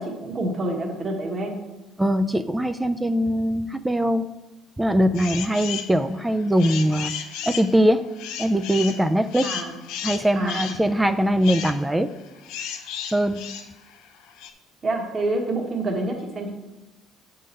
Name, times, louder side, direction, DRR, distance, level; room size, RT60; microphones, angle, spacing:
voice 1, 0.0-1.6 9.4-9.7 10.3-10.7 14.8-16.5, right 2 dB, 35° right, 1 dB, 1.4 m, -27 dB
voice 2, 2.0-4.3 4.8-7.1 7.5-8.0 8.4-9.5 10.0-12.1 13.1-13.4, equal, 10° right, 9 dB, 0.4 m, -21 dB
sound 1, 5.1-5.9 6.4-14.5, left 9 dB, 90° left, 0.7 m, -34 dB
8.3 x 3.8 x 5.3 m, 1.0 s
cardioid pair, 105°, 0 cm